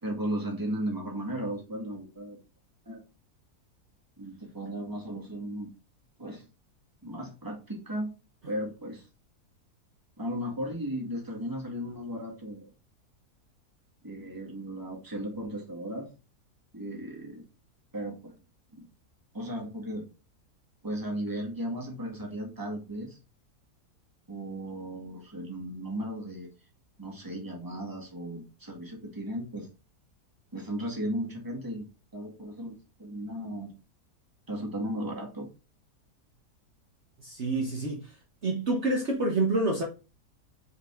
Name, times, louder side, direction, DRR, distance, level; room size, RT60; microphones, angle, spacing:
voice 1, 0.0-2.4 2.9-3.0 4.2-5.7 6.2-6.5 7.0-8.1 8.5-9.1 10.2-12.7 14.0-16.1 16.7-17.4 17.9-18.2 18.7-18.9 19.3-20.1 20.8-23.2 24.3-26.5 27.0-29.7 30.5-31.9 32.1-33.7 34.5-35.5, right 1 dB, 15° right, 1.9 m, -35 dB
voice 2, 37.2-38.1 38.4-39.8, right 2 dB, 50° right, 1.4 m, -27 dB
5.1 x 5.1 x 3.7 m
omnidirectional pair, 1.7 m